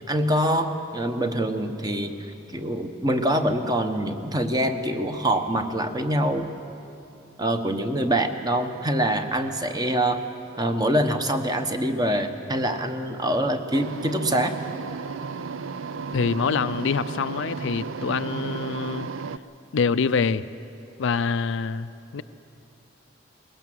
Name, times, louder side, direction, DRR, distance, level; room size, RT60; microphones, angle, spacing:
voice 1, 0.1-2.1 2.5-6.5 7.4-10.2 10.6-14.5, right 1 dB, 20° right, 7 dB, 1.1 m, -24 dB
sound 1, 13.7-19.4, right 5 dB, 70° right, 0.5 m, -33 dB
voice 2, 16.1-19.1 19.7-20.4 21.0-22.2, left 5 dB, 65° left, 13 dB, 0.5 m, -25 dB
21.0 x 18.5 x 7.7 m, 2.8 s
head